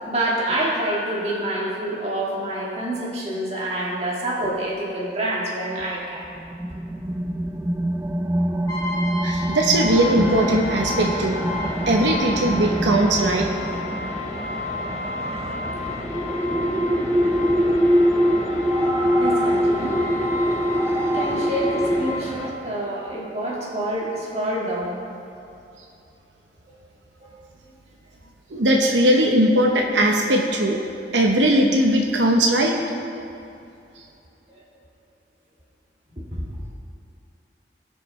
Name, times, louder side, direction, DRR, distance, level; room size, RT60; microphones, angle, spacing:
voice 1, 0.1-6.3 19.2-20.1 21.1-25.0 27.2-27.4 34.5-34.6 36.2-36.4, right 1 dB, 35° right, -4 dB, 1.9 m, -27 dB
sound 1, 6.4-22.1, equal, 15° right, 0.4 m, -24 dB
Brass instrument, 8.7-22.3, left 2 dB, 20° left, 1.2 m, -33 dB
voice 2, 9.2-11.4 11.9-13.5 28.5-30.8 31.1-32.7, right 1 dB, 85° right, 1 dB, 0.9 m, -19 dB
sound 2, 9.9-22.5, left 1 dB, 40° left, 1.1 m, -34 dB
19.0 x 6.5 x 3.2 m, 2.7 s
head